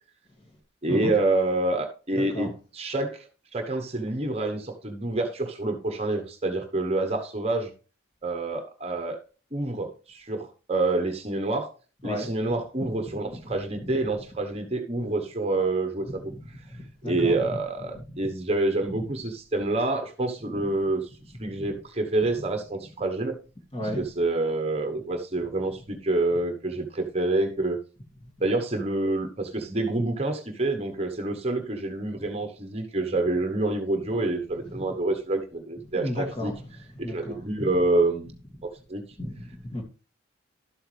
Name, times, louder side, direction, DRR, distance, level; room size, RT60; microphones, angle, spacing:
voice 1, 0.8-7.7 8.2-9.2 9.5-11.7 12.0-16.2 17.0-21.1 21.4-23.4 24.0-27.8 28.4-36.5 37.0-38.3 38.6-39.0, right 2 dB, 30° right, 1.0 m, -27 dB
voice 2, 2.1-2.5 12.0-12.3 13.5-13.6 16.3-16.4 16.6-17.6 17.9-18.0 20.6-20.7 21.5-21.7 23.7-24.1 34.7-34.8 35.9-36.6 37.0-37.7 39.2-39.8, left 1 dB, 25° left, 2.3 m, -33 dB
12.0 x 7.8 x 3.3 m
head